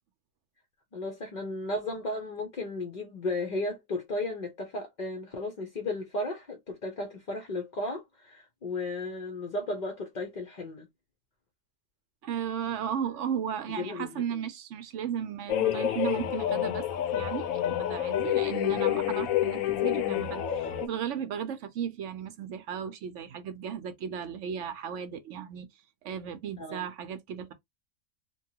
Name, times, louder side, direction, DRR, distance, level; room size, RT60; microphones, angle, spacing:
voice 1, 0.9-10.9 13.8-14.4 26.6-26.8, left 2 dB, 50° left, 0.6 m, -34 dB
voice 2, 12.2-16.8 17.1-25.7 26.0-27.5, right 8 dB, 65° right, 0.8 m, -35 dB
sound 1, 15.5-20.9, left 11 dB, 80° left, 1.0 m, -28 dB
2.8 x 2.3 x 2.7 m
omnidirectional pair, 1.5 m